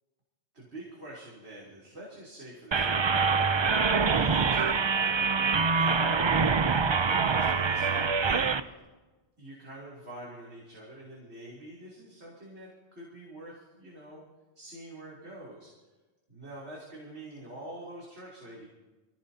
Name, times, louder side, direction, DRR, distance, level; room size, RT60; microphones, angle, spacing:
voice 1, 0.5-3.7 4.1-5.0 5.7-8.8 9.4-14.2 14.6-15.7 16.3-18.7, right 1 dB, 75° right, -5 dB, 3.6 m, -46 dB
sound 1, 2.7-8.6, right 5 dB, 40° right, 0.4 m, -25 dB
25.0 x 17.0 x 2.8 m, 1.2 s
omnidirectional pair, 1.1 m